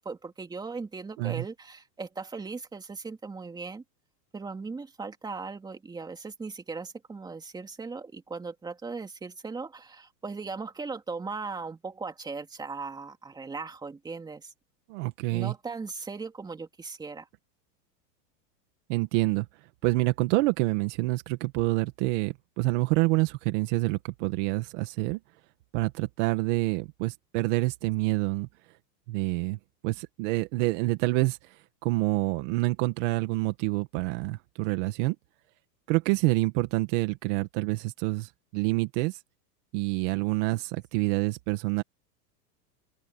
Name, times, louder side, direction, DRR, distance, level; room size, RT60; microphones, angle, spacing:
voice 1, 0.0-3.8 4.3-14.5 15.3-17.3, right 4 dB, 10° right, 2.8 m, -38 dB
voice 2, 14.9-15.5 18.9-19.5 19.8-25.2 25.7-28.5 29.1-29.6 29.8-31.4 31.8-35.2 35.9-39.2 39.7-41.8, right 21 dB, 45° right, 2.1 m, -27 dB
open air
supercardioid pair, 160°, 49 cm